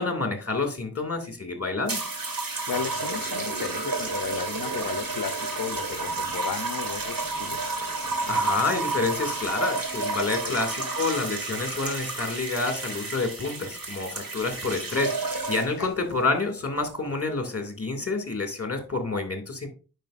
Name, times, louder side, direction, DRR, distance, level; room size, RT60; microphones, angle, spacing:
voice 1, 0.0-2.0 8.3-19.7, left 3 dB, 35° left, 5 dB, 2.2 m, -28 dB
sound 1, 1.9-15.9 16.8-17.1, right 3 dB, 60° right, 1.8 m, -31 dB
voice 2, 2.7-7.8 10.5-10.6 15.8-15.9, left 7 dB, 60° left, 8 dB, 0.7 m, -34 dB
9.1 x 5.7 x 2.5 m, 0.34 s
wide cardioid pair, 65°, 38 cm